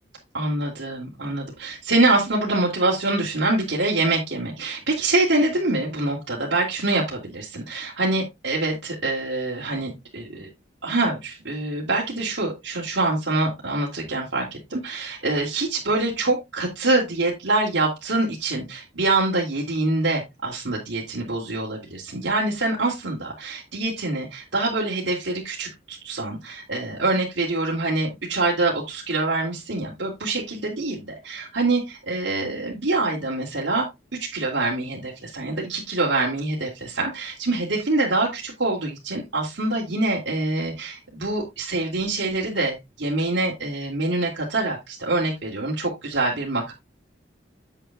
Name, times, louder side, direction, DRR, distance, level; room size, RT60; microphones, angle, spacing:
voice 1, 0.3-10.5 10.8-46.7, right 2 dB, 85° right, -4 dB, 2.9 m, -25 dB
9.0 x 8.7 x 2.4 m, 0.21 s
head